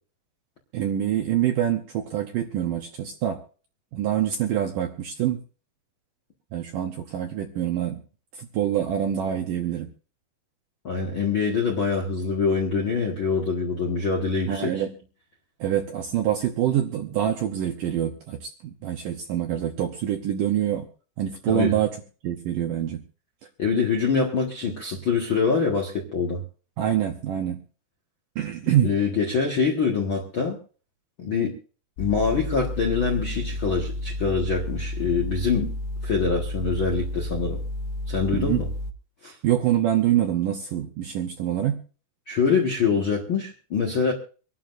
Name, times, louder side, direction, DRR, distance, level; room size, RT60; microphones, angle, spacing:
voice 1, 0.7-3.4 3.9-5.4 6.5-8.0 8.4-9.9 14.5-14.9 15.6-20.9 21.2-22.0 22.2-23.0 26.8-27.6 28.4-28.9 38.3-38.6 39.4-41.8, right 11 dB, 75° right, 2.0 m, -25 dB
voice 2, 10.8-14.7 21.5-21.7 23.6-26.4 28.8-30.6 31.2-31.5 32.0-35.7 36.0-37.6 38.1-38.6 39.2-39.3 42.3-44.1, left 5 dB, 55° left, 1.4 m, -24 dB
sound 1, 32.0-38.9, left 1 dB, 75° left, 2.7 m, -31 dB
25.5 x 11.5 x 2.6 m
omnidirectional pair, 5.0 m